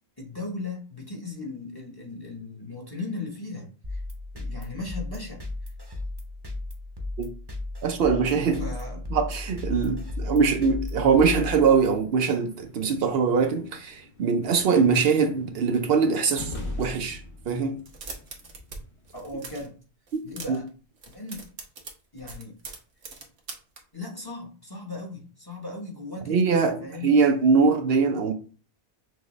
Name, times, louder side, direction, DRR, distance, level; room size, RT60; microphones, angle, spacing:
voice 1, 0.2-4.0 4.3-5.4 8.6-9.0 19.1-19.8 20.2-20.7 21.1-21.4 22.1-22.6 23.9-27.1, left 3 dB, 20° left, 0.9 m, -37 dB
sound 1, 3.8-12.0, left 2 dB, 25° right, 0.7 m, -35 dB
voice 2, 7.8-8.6 9.1-17.8 20.1-20.2 20.5-20.6 26.3-28.3, right 5 dB, 70° right, 0.8 m, -22 dB
sound 2, 12.5-19.2, left 2 dB, 55° left, 1.3 m, -42 dB
sound 3, 17.8-18.8 19.0-19.7 20.1-20.7 21.0-23.8, right 4 dB, 85° right, 1.2 m, -41 dB
6.2 x 2.2 x 3.1 m
omnidirectional pair, 1.1 m